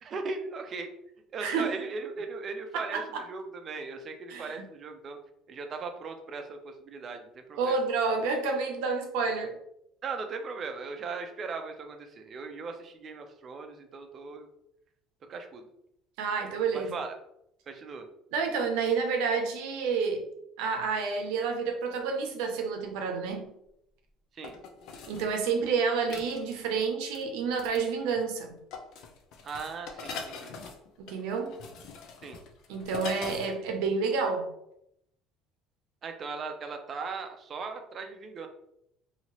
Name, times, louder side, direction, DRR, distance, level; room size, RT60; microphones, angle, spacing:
voice 1, 0.0-0.9 1.3-5.2 5.5-7.8 10.0-14.5 15.3-15.7 16.7-17.1 17.7-18.1 24.3-24.5 29.4-30.5 32.2-32.4 36.0-38.5, right 4 dB, 35° right, 6 dB, 0.5 m, -38 dB
voice 2, 1.4-1.7 2.7-3.2 4.3-4.7 7.6-9.6 16.2-16.9 18.3-20.2 20.6-23.6 25.1-28.6 31.0-31.6 32.7-34.5, right 5 dB, 90° right, 4 dB, 0.6 m, -29 dB
sound 1, 23.1-23.2 24.4-25.3 26.1-26.7 27.1-27.2 27.6-27.9 28.2-28.4 28.7-33.6 33.8-33.9, left 4 dB, 65° left, 0.5 m, -42 dB
2.8 x 2.8 x 3.0 m, 0.78 s
cardioid pair, 135°, 0 cm